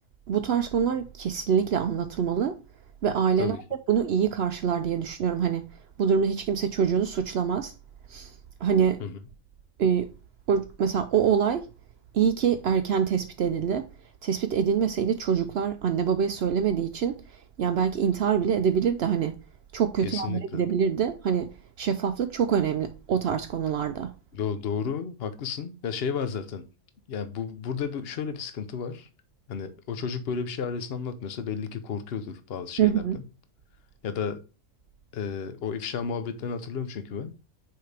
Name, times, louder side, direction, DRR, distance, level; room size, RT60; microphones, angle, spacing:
voice 1, 0.3-2.6 3.0-3.6 3.9-5.7 6.0-7.7 8.1-8.3 8.6-9.0 9.8-10.1 10.5-11.7 12.1-13.9 14.2-17.2 17.6-19.4 19.7-21.5 21.8-24.1 32.8-33.2, right 7 dB, 65° right, 0.7 m, -25 dB
voice 2, 20.0-20.6 24.3-26.6 27.1-29.1 29.5-33.2 34.0-34.4 35.1-37.3, left 6 dB, 55° left, 0.9 m, -32 dB
6.2 x 4.8 x 3.3 m
omnidirectional pair, 1.4 m